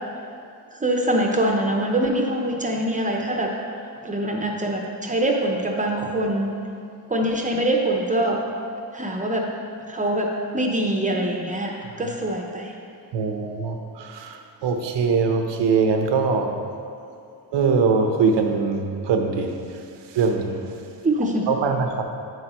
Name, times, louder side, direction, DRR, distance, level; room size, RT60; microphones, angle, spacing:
voice 1, 0.7-3.5 4.0-6.5 7.1-8.4 8.9-9.5 9.9-12.7 21.0-21.5, right 1 dB, 20° right, 0 dB, 0.7 m, -24 dB
voice 2, 13.1-16.6 17.5-19.5 20.1-20.6 21.5-22.0, right 5 dB, 85° right, 5 dB, 0.9 m, -22 dB
9.9 x 7.8 x 3.0 m, 2.6 s
cardioid pair, 145°, 41 cm